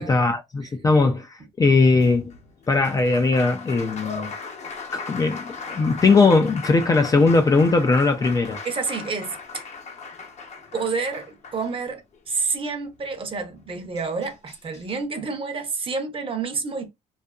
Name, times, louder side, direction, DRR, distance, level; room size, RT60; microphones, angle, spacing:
voice 1, 0.0-2.4 2.7-4.3 4.9-8.6, left 3 dB, 20° left, 0.4 m, -19 dB
Applause, 1.9-12.2 13.6-13.7 14.0-15.0, left 4 dB, 40° left, 0.7 m, -38 dB
voice 2, 8.6-9.6 10.7-16.9, right 4 dB, 30° right, 0.7 m, -29 dB
2.6 x 2.4 x 2.3 m
cardioid pair, 110°, 17 cm